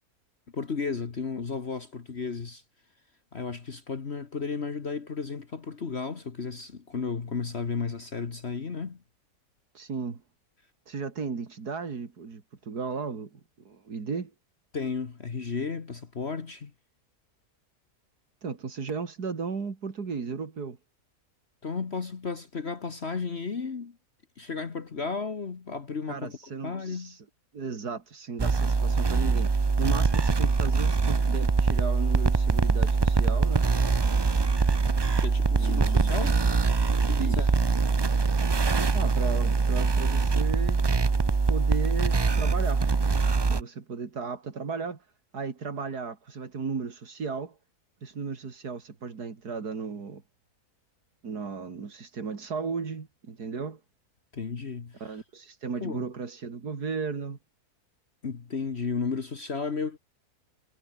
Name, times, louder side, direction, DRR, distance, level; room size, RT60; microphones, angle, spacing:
voice 1, 0.5-2.6 3.3-9.0 14.7-16.7 21.6-24.0 24.4-27.2 35.2-36.4 37.0-37.5 54.3-55.2 55.8-56.0 58.2-60.0, left 5 dB, 45° left, 1.7 m, -33 dB
voice 2, 9.7-10.2 10.9-13.4 13.6-14.3 18.4-20.8 26.1-27.2 27.5-33.7 35.6-36.1 37.2-37.5 38.9-40.8 41.5-45.0 45.3-47.5 48.0-50.2 51.2-53.8 55.0-57.4, right 5 dB, 85° right, 3.0 m, -35 dB
sound 1, 28.4-43.6, right 4 dB, 40° right, 0.3 m, -23 dB
omnidirectional pair, 1.6 m